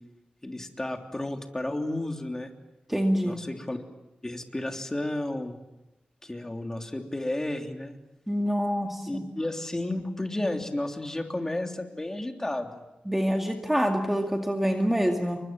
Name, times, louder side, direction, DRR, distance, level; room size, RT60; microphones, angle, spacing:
voice 1, 0.4-2.5 3.2-3.8 4.2-5.6 6.2-7.9 9.1-12.8, left 1 dB, 20° left, 3 dB, 3.3 m, -32 dB
voice 2, 2.9-3.4 8.3-9.2 13.1-15.4, equal, 5° right, 3 dB, 2.2 m, -26 dB
29.5 x 24.0 x 7.6 m, 0.95 s
wide cardioid pair, 115°, 3 cm